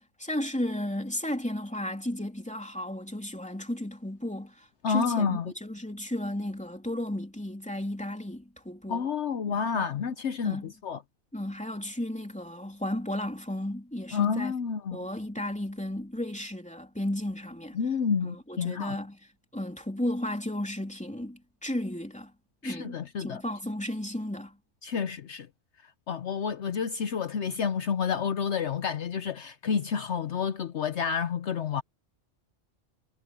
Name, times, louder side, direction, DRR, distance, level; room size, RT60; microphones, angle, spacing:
voice 1, 0.0-9.0 9.5-9.9 10.4-10.7 11.3-14.5 14.9-17.8 18.2-19.2 19.5-22.3 22.6-24.6, left 1 dB, 5° left, 3.1 m, -34 dB
voice 2, 4.8-5.5 8.9-11.0 14.1-15.0 17.7-19.0 22.6-23.4 24.8-25.5 26.1-31.8, left 6 dB, 65° left, 1.1 m, -29 dB
omnidirectional pair, 1.3 m